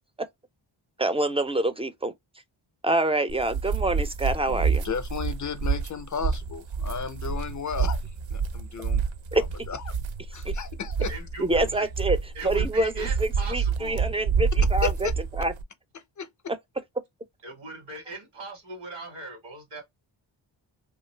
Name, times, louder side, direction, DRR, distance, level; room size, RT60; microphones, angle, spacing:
voice 1, 1.0-2.1 2.8-4.8 9.3-9.4 10.4-10.5 11.4-12.2 12.4-15.1 15.4-15.5, right 2 dB, 15° right, 0.3 m, -26 dB
sound 1, 3.3-15.6, right 6 dB, 65° right, 0.6 m, -28 dB
voice 2, 4.5-8.0 8.3-9.0 9.4-10.0 10.3-11.1 14.8-15.1 15.9-16.3, left 6 dB, 40° left, 0.5 m, -34 dB
voice 3, 11.1-11.9 12.3-14.1 17.4-19.8, right 2 dB, 85° right, 1.2 m, -39 dB
2.6 x 2.3 x 3.2 m
cardioid pair, 70°, 49 cm